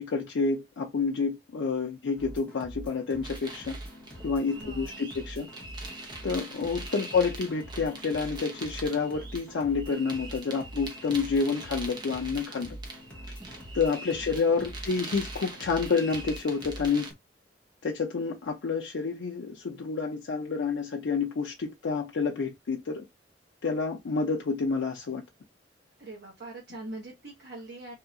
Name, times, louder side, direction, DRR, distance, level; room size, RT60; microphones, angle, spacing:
voice 1, 0.0-3.8 4.2-5.5 6.2-12.8 13.7-17.1 17.8-23.0 23.6-25.2, left 4 dB, 90° left, 0.5 m, -29 dB
sound 1, 2.2-17.1, right 1 dB, 5° left, 0.9 m, -44 dB
sound 2, 3.2-17.1, right 2 dB, 25° right, 0.6 m, -43 dB
voice 2, 4.6-5.1 6.5-6.9 14.2-14.7 26.0-27.9, right 2 dB, 60° right, 1.0 m, -43 dB
2.8 x 2.7 x 2.5 m
head